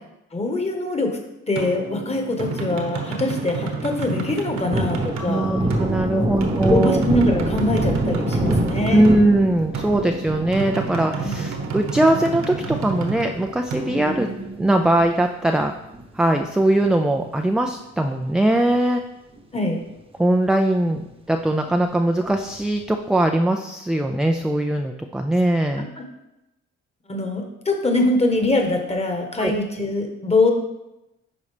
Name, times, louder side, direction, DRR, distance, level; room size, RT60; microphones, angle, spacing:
voice 1, 0.3-1.2 1.5-5.5 6.1-6.3 6.7-9.1 19.5-19.8 26.0-26.1 27.1-30.5, left 2 dB, 20° left, 3 dB, 1.3 m, -23 dB
sound 1, 1.6-15.1, right 4 dB, 65° right, 1.2 m, -30 dB
Thunder, 4.3-15.0 15.4-15.5 15.9-17.4 17.7-17.8 18.2-19.0 19.4-19.5 19.8-19.9 22.3-22.8, right 1 dB, 20° right, 0.9 m, -27 dB
voice 2, 5.2-7.0 8.9-14.3 14.6-15.7 16.1-19.0 20.2-21.0 21.3-25.9 29.4-29.5, right 1 dB, 5° right, 4 dB, 0.3 m, -20 dB
10.5 x 4.1 x 3.3 m, 0.91 s
cardioid pair, 90°, 30 cm